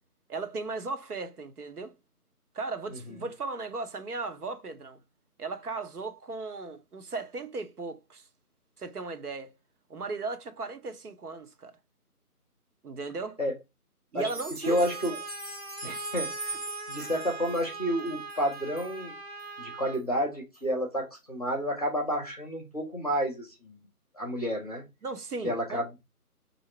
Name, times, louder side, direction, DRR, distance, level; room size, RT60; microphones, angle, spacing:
voice 1, 0.3-1.9 2.5-5.0 5.4-8.3 8.8-9.5 9.9-11.7 12.8-13.4 14.1-15.2 15.8-16.1 25.0-26.0, right 3 dB, 75° right, 0.9 m, -37 dB
sound 1, 14.2-18.9 19.4-19.5 19.9-20.0 20.5-20.6, right 2 dB, 15° right, 1.6 m, -41 dB
voice 2, 14.6-15.1 15.8-16.5 16.9-19.2 19.6-23.8 24.1-24.8 25.4-25.9, equal, 25° left, 0.8 m, -30 dB
Trumpet, 14.6-20.0, right 4 dB, 45° right, 0.9 m, -41 dB
3.7 x 2.8 x 4.3 m
figure-of-eight pair, 170°, 46 cm